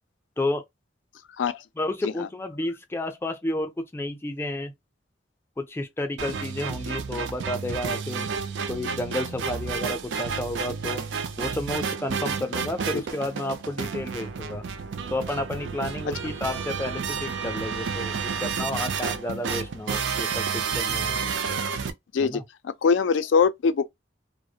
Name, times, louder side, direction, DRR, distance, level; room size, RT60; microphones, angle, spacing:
voice 1, 1.8-4.7 5.6-8.3 8.7-11.0 11.4-14.6 15.1-21.2 22.2-22.4, left 1 dB, 15° left, 0.4 m, -31 dB
sound 1, 6.2-21.9, right 6 dB, 85° right, 0.4 m, -30 dB
voice 2, 22.1-23.9, left 5 dB, 85° left, 0.4 m, -23 dB
2.3 x 2.0 x 2.7 m
head